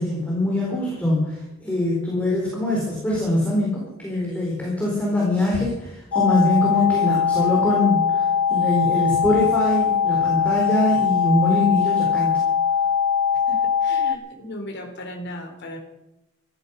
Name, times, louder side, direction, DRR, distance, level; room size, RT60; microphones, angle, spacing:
voice 1, 0.0-12.4, left 1 dB, 5° left, -4 dB, 4.0 m, -23 dB
sound 1, 6.1-14.2, left 7 dB, 80° left, 1.1 m, -21 dB
voice 2, 13.5-15.8, left 1 dB, 55° left, 2 dB, 3.9 m, -36 dB
15.5 x 14.5 x 5.4 m, 0.96 s
head